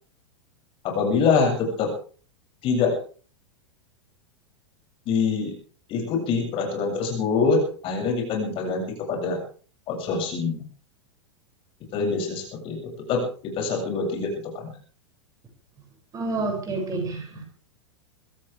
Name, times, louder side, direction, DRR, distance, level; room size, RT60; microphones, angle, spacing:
voice 1, 0.8-1.9 2.6-3.0 5.1-5.5 5.9-9.4 9.9-10.6 11.9-12.8 13.1-14.3 14.5-14.7, left 4 dB, 35° left, 1 dB, 7.6 m, -24 dB
voice 2, 16.1-17.4, right 3 dB, 25° right, 2 dB, 6.8 m, -29 dB
24.0 x 15.5 x 3.6 m, 0.41 s
figure-of-eight pair, 95°, 15 cm